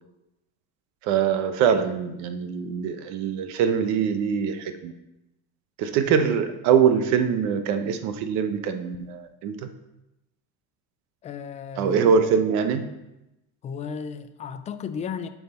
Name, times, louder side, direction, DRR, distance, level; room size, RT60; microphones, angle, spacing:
voice 1, 1.0-4.9 5.8-9.7 11.8-12.9, right 7 dB, 55° right, 9 dB, 0.9 m, -23 dB
voice 2, 11.2-12.1 13.6-15.3, left 6 dB, 20° left, 11 dB, 0.4 m, -34 dB
9.2 x 5.9 x 4.2 m, 0.93 s
cardioid pair, 155°, 33 cm